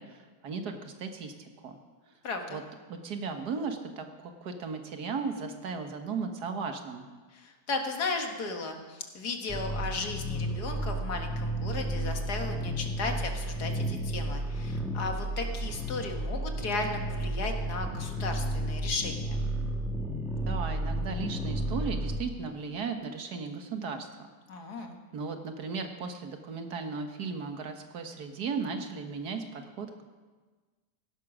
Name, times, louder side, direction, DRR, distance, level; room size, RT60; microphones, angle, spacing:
voice 1, 0.0-1.8 2.5-2.6 2.9-7.1 20.3-24.3 24.8-30.0, right 5 dB, 80° right, 6 dB, 1.9 m, -36 dB
voice 2, 2.2-2.6 7.3-19.4 24.5-25.0, left 3 dB, 75° left, 4 dB, 2.1 m, -35 dB
sound 1, 9.5-22.2, right 1 dB, ahead, 1.8 m, -32 dB
16.0 x 11.5 x 6.1 m, 1.3 s
omnidirectional pair, 1.7 m